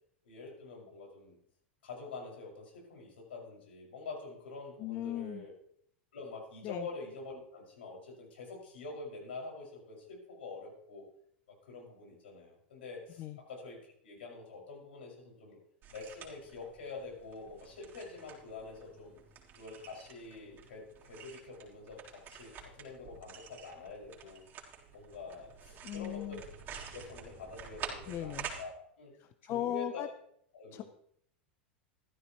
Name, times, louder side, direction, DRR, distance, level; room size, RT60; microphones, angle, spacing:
voice 1, 0.2-1.4 1.8-5.5 6.1-11.1 11.6-15.6 15.9-19.2 19.6-24.4 24.9-26.4 26.9-29.1 29.4-30.0 30.5-30.8, left 3 dB, 80° left, -2 dB, 5.9 m, -46 dB
voice 2, 4.8-5.5 6.6-6.9 13.2-13.4 25.8-26.4 28.1-28.5 29.2-30.1 30.7-30.8, left 12 dB, 40° left, 11 dB, 0.7 m, -37 dB
sound 1, 15.8-28.6, right 7 dB, 35° right, 3.7 m, -49 dB
15.0 x 13.0 x 3.1 m, 0.69 s
hypercardioid pair, 95°, 6 cm